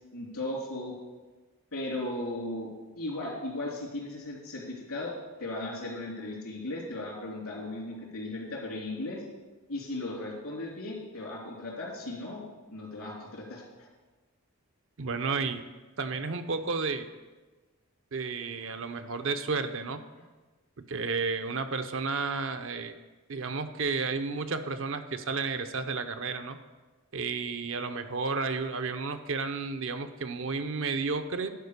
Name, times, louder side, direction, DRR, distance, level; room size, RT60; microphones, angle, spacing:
voice 1, 0.1-0.9 1.7-2.7 3.0-9.2 9.7-12.4 12.7-13.9, left 2 dB, 85° left, -3 dB, 3.5 m, -36 dB
voice 2, 15.0-15.7 16.0-17.1 18.1-20.0 20.9-22.9 23.3-26.6 27.1-31.5, right 4 dB, 60° right, 8 dB, 0.7 m, -32 dB
11.5 x 5.1 x 6.6 m, 1.3 s
head